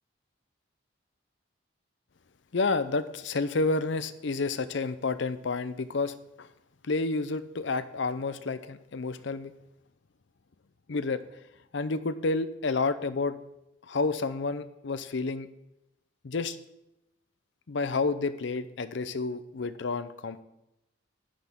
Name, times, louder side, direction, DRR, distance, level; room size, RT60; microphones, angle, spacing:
voice 1, 2.5-6.5 6.8-9.5 10.9-11.2 11.7-13.4 13.9-15.5 16.2-16.6 17.7-20.4, left 3 dB, 65° left, 13 dB, 0.6 m, -30 dB
10.0 x 10.0 x 3.6 m, 0.87 s
head